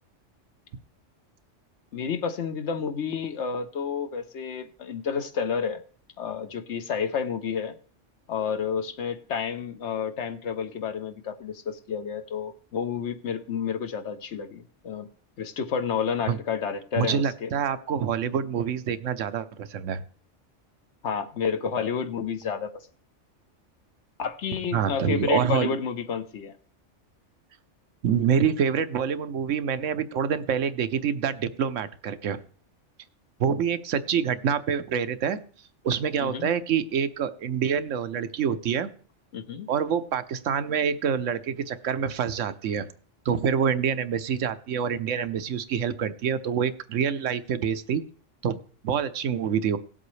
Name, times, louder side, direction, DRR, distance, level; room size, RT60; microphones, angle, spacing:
voice 1, 1.9-5.8 6.2-7.8 8.3-15.1 15.4-17.5 21.0-22.8 24.2-26.6 36.2-36.5 39.3-39.7, left 6 dB, 70° left, 10 dB, 1.1 m, -30 dB
voice 2, 17.0-20.0 24.7-25.8 28.0-32.4 33.4-35.4 35.8-38.9 39.7-42.9 43.3-48.0 48.4-48.6 48.8-49.8, right 7 dB, 80° right, 11 dB, 1.1 m, -26 dB
18.0 x 7.7 x 3.2 m, 0.42 s
omnidirectional pair, 1.3 m